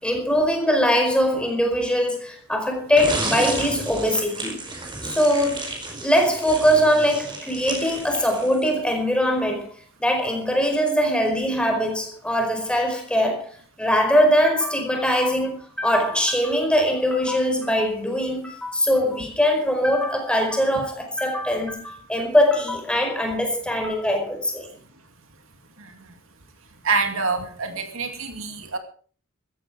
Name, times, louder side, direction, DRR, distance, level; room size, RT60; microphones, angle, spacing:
voice 1, 0.0-4.6 5.0-5.7 6.0-9.7 10.0-13.5 13.8-24.7, equal, 5° left, 4.8 m, -22 dB
sound 1, 3.0-8.8, right 2 dB, 20° right, 4.5 m, -32 dB
voice 2, 26.8-28.8, right 4 dB, 70° right, 2.5 m, -26 dB
15.5 x 14.0 x 4.9 m
head